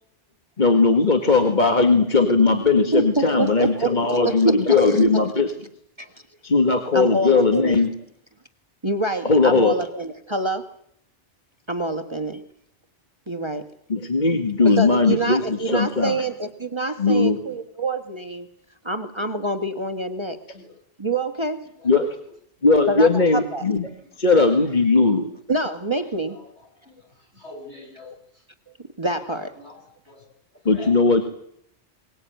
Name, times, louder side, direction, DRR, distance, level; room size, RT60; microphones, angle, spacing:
voice 1, 0.6-5.5 6.4-7.9 9.2-9.8 13.9-16.2 17.0-17.4 21.8-22.2 22.6-23.9 24.2-25.3 30.7-31.2, left 3 dB, 40° left, 5 dB, 1.9 m, -18 dB
voice 2, 2.9-5.0 6.0-6.1 6.9-7.8 8.8-10.7 11.7-12.4 13.3-13.7 14.6-18.5 18.8-20.4 21.0-21.6 22.9-23.6 25.5-26.4 29.0-29.6, right 2 dB, 25° right, 7 dB, 1.5 m, -26 dB
voice 3, 27.3-28.2 29.6-30.2 30.7-30.9, left 2 dB, 65° left, 0 dB, 7.7 m, -43 dB
23.5 x 19.0 x 9.2 m, 0.71 s
omnidirectional pair, 1.2 m